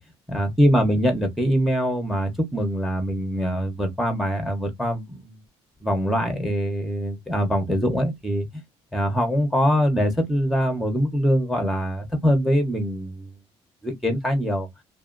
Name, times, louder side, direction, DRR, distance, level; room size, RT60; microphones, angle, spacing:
voice 1, 0.3-5.4 5.8-8.6 8.9-13.3 13.8-14.7, equal, ahead, 0.8 m, -23 dB
2.7 x 2.6 x 2.5 m
cardioid pair, 140°, 11 cm